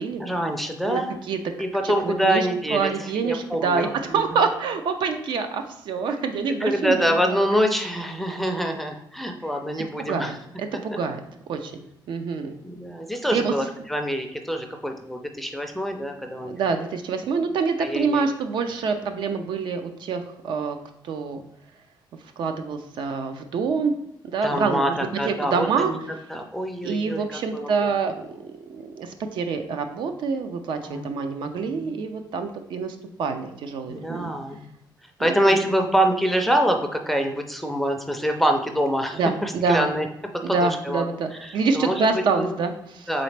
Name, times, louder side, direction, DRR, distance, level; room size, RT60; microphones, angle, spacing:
voice 1, 0.2-1.2 1.6-4.5 6.6-10.3 12.6-16.6 17.8-18.3 24.4-24.9 25.2-26.0 26.3-27.9 30.8-31.1 31.5-32.0 33.9-34.6 35.2-40.1 40.5-41.0 41.3-42.1 42.4-42.5 43.1-43.2, equal, ahead, 4 dB, 0.4 m, -25 dB
voice 2, 1.3-7.4 10.0-10.3 10.6-11.2 11.5-12.6 13.3-13.5 16.4-20.8 21.0-21.4 22.4-23.9 24.2-25.0 25.3-25.9 26.8-34.3 35.2-35.6 39.2-39.9 40.4-43.1, right 5 dB, 70° right, 7 dB, 0.4 m, -26 dB
3.9 x 3.2 x 3.3 m, 0.82 s
cardioid pair, 135°, 8 cm